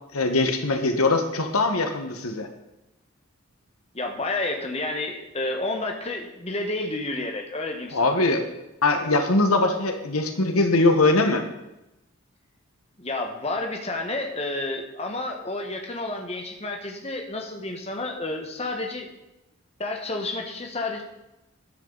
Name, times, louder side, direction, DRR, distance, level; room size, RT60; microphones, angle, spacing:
voice 1, 0.1-2.5 7.9-8.4 8.8-11.4, left 2 dB, 90° left, 6 dB, 1.5 m, -21 dB
voice 2, 3.9-8.2 13.0-19.1 19.8-21.0, left 2 dB, 30° left, 3 dB, 1.4 m, -30 dB
13.0 x 11.0 x 4.1 m, 0.94 s
head